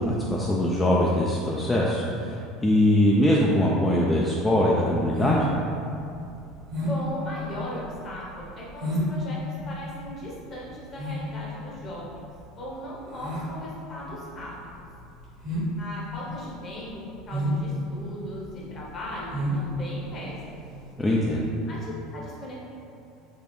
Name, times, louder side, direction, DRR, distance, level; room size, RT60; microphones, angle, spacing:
voice 1, 0.0-5.5 21.0-21.5, left 1 dB, 15° left, -4 dB, 0.4 m, -22 dB
sound 1, 5.2-20.9, equal, 55° right, 1.2 m, -32 dB
voice 2, 6.8-14.8 15.8-16.9 17.3-20.6 21.7-22.5, left 1 dB, 35° left, -5 dB, 1.0 m, -38 dB
4.1 x 2.3 x 3.1 m, 2.6 s
figure-of-eight pair, 70°, 0 cm